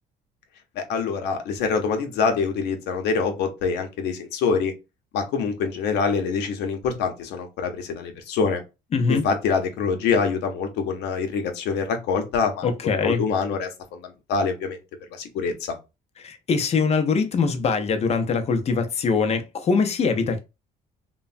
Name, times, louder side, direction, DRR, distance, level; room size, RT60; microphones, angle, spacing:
voice 1, 0.7-4.7 5.1-8.6 9.1-12.7 13.0-14.8 15.1-15.8, left 5 dB, 80° left, 0.7 m, -25 dB
voice 2, 8.9-9.2 12.6-13.2 16.2-20.4, left 5 dB, 40° left, 0.6 m, -22 dB
3.0 x 2.1 x 2.5 m
cardioid pair, 110°, 17 cm